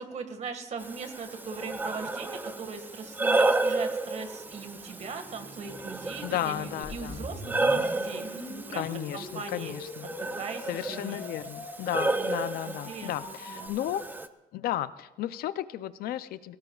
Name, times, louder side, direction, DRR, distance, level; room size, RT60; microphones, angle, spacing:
voice 1, 0.0-9.7 10.0-11.2 12.2-13.7, right 5 dB, 50° right, 7 dB, 1.8 m, -40 dB
Breathing, 0.8-14.3, right 2 dB, 10° right, 0.6 m, -32 dB
sound 1, 4.3-9.3, right 2 dB, 35° right, 3.2 m, -51 dB
voice 2, 6.2-7.3 8.7-10.1 10.7-14.1 14.5-16.6, left 12 dB, 85° left, 14 dB, 0.5 m, -34 dB
sound 2, 6.8-13.7, left 2 dB, 45° left, 6.4 m, -43 dB
21.5 x 18.0 x 2.4 m, 1.0 s
cardioid pair, 135°, 15 cm